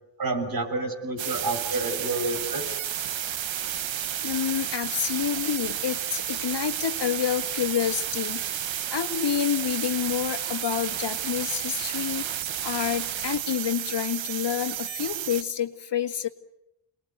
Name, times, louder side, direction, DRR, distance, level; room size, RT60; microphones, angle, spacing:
voice 1, 0.2-2.6, right 2 dB, 50° right, 5 dB, 6.8 m, -29 dB
sound 1, 1.2-15.4, right 10 dB, 75° right, 1.3 m, -31 dB
voice 2, 4.2-12.3 12.6-16.3, left 9 dB, 65° left, 7 dB, 1.9 m, -28 dB
28.0 x 21.0 x 9.5 m, 0.89 s
cardioid pair, 90°, 45 cm